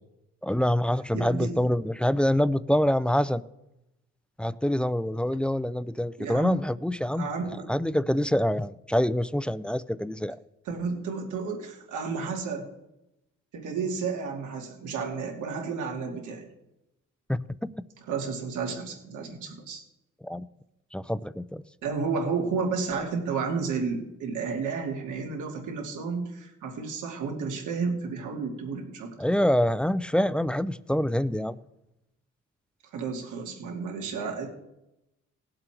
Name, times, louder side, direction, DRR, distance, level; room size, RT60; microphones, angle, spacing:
voice 1, 0.4-3.4 4.4-7.3 7.7-10.4 17.3-17.7 20.2-20.5 20.9-21.6 29.2-31.6, equal, 5° left, 16 dB, 0.4 m, -26 dB
voice 2, 1.1-1.6 6.2-6.6 7.1-7.7 10.6-12.7 13.5-16.4 18.0-19.8 21.8-29.1 32.9-34.5, right 5 dB, 80° right, 2 dB, 2.8 m, -32 dB
18.5 x 7.7 x 4.5 m, 0.90 s
cardioid pair, 90°, 30 cm